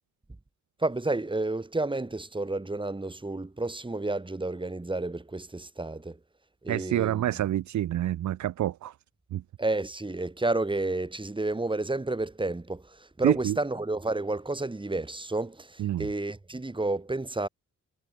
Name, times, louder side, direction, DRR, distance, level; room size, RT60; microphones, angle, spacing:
voice 1, 0.8-6.2 6.6-7.3 9.6-17.5, right 2 dB, 15° right, 4.8 m, -31 dB
voice 2, 6.7-8.9 9.3-9.4 13.2-13.6 15.8-16.1, right 13 dB, 75° right, 0.7 m, -27 dB
cardioid pair, 100°, 30 cm